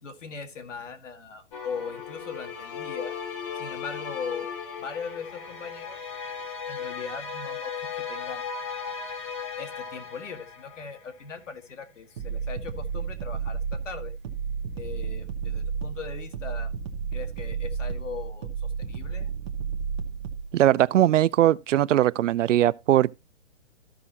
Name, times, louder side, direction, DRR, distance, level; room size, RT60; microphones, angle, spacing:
voice 1, 0.0-3.1 3.5-4.5 4.8-6.1 6.7-8.4 9.6-14.1 14.7-16.7 17.1-19.3, left 5 dB, 80° left, 1.7 m, -39 dB
sound 1, 1.5-11.3, left 6 dB, 30° left, 1.2 m, -36 dB
sound 2, 12.2-20.5, right 6 dB, 25° right, 0.8 m, -32 dB
voice 2, 20.5-23.2, right 12 dB, 85° right, 0.5 m, -20 dB
14.0 x 5.6 x 2.9 m
hypercardioid pair, 165°, 36 cm